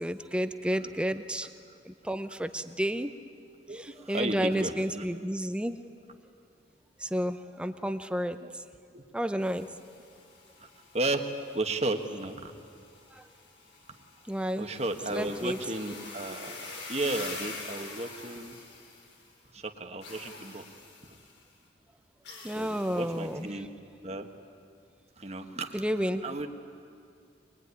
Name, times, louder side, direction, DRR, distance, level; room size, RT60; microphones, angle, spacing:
voice 1, 0.0-1.5 1.9-3.1 3.7-5.8 7.0-8.4 9.1-9.7 13.2-13.3 14.3-14.7 15.1-15.6 22.4-23.5 25.7-26.2, equal, 5° right, 9 dB, 0.7 m, -31 dB
voice 2, 3.7-5.0 8.4-8.5 8.9-9.0 10.6-10.7 10.9-11.3 11.5-12.5 14.5-16.6 16.9-18.6 19.5-20.6 21.0-21.1 22.6-23.7 24.0-24.3 25.2-25.9 26.2-26.5, right 2 dB, 35° right, 5 dB, 1.5 m, -34 dB
sound 1, 9.4-19.4 20.0-21.4 22.2-23.5, left 3 dB, 80° left, 4.4 m, -46 dB
23.5 x 22.0 x 9.8 m, 2.4 s
head